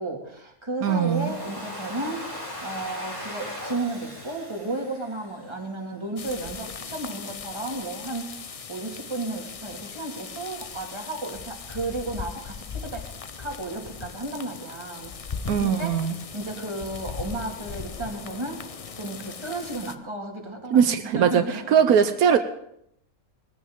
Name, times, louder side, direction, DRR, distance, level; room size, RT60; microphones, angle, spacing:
voice 1, 0.0-13.1 13.4-15.1 15.5-18.6 18.9-21.7, right 2 dB, 20° right, 0 dB, 2.3 m, -33 dB
voice 2, 0.8-1.3 15.5-16.1 20.7-21.4 21.7-22.4, right 8 dB, 80° right, 8 dB, 1.3 m, -20 dB
Domestic sounds home sounds, 0.9-5.8, left 1 dB, 25° left, 4.8 m, -38 dB
sound 1, 6.2-20.0, left 6 dB, 50° left, 0.4 m, -38 dB
20.0 x 15.5 x 3.7 m, 0.75 s
omnidirectional pair, 1.5 m